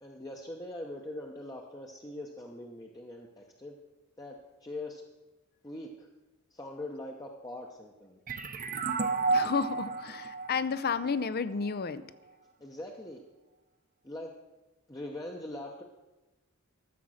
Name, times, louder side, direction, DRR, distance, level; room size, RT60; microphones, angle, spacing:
voice 1, 0.0-3.8 4.2-5.0 5.6-6.1 6.5-8.2 12.6-13.2 14.0-14.3 14.9-15.8, left 1 dB, 15° left, 1 dB, 0.8 m, -42 dB
sound 1, 8.3-11.7, right 4 dB, 40° right, 0.8 m, -32 dB
voice 2, 9.3-12.0, left 5 dB, 45° left, 15 dB, 0.5 m, -31 dB
13.5 x 7.2 x 6.3 m, 1.1 s
head